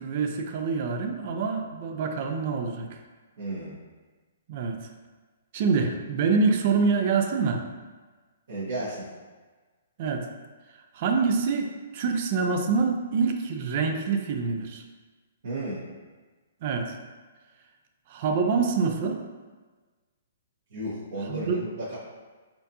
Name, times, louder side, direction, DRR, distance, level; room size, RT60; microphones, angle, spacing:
voice 1, 0.0-3.0 4.5-4.8 5.5-7.6 10.0-10.3 10.7-14.8 16.6-17.0 18.1-19.2 21.2-21.6, right 5 dB, 40° right, 5 dB, 0.4 m, -26 dB
voice 2, 3.4-3.7 8.5-9.0 15.4-15.8 20.7-22.0, right 1 dB, 65° right, -11 dB, 1.4 m, -33 dB
4.2 x 2.7 x 2.7 m, 1.3 s
hypercardioid pair, 160°, 0 cm